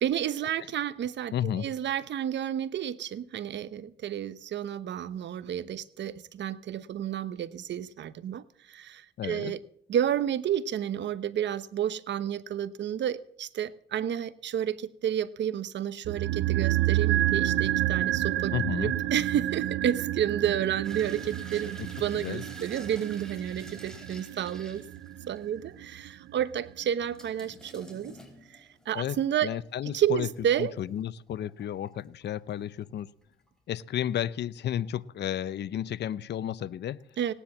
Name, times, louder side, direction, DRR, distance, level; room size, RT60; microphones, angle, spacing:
voice 1, 0.0-9.6 9.9-18.5 18.8-24.8 25.3-28.2 28.5-29.5 29.8-30.7 37.2-37.3, right 10 dB, 65° right, 1.0 m, -31 dB
voice 2, 1.3-1.7 9.2-9.5 18.5-18.9 21.8-21.9 22.1-22.4 28.9-30.3 30.6-33.1 33.7-37.0, left 10 dB, 60° left, 0.7 m, -32 dB
sound 1, 16.0-26.3 26.6-26.7, right 14 dB, 85° right, 0.7 m, -29 dB
sound 2, 20.8-25.6 26.0-26.1 27.0-29.2 29.7-31.0 31.4-32.6 33.0-33.5 33.8-33.9, equal, 5° left, 4.4 m, -50 dB
18.5 x 10.0 x 7.3 m
cardioid pair, 90°, 20 cm